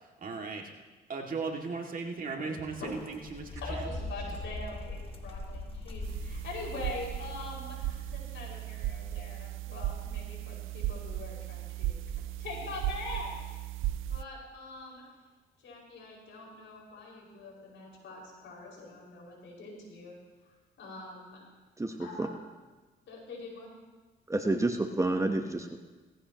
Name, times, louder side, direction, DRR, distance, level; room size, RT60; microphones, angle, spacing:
voice 1, 0.2-0.6 1.1-3.9, right 4 dB, 45° right, 1 dB, 2.2 m, -37 dB
sound 1, 2.7-8.4, left 1 dB, 30° left, 1.8 m, -41 dB
voice 2, 3.6-11.9 12.4-13.3 14.1-15.1 15.6-20.1 20.8-21.4 22.0-22.3 23.1-23.7, left 2 dB, 75° left, -3 dB, 5.4 m, -43 dB
sound 2, 6.0-14.2, right 13 dB, 85° right, 0.5 m, -36 dB
voice 3, 21.8-22.3 24.3-25.8, right 2 dB, 15° right, 5 dB, 1.0 m, -29 dB
18.5 x 15.5 x 3.0 m, 1.3 s
cardioid pair, 90°, 20 cm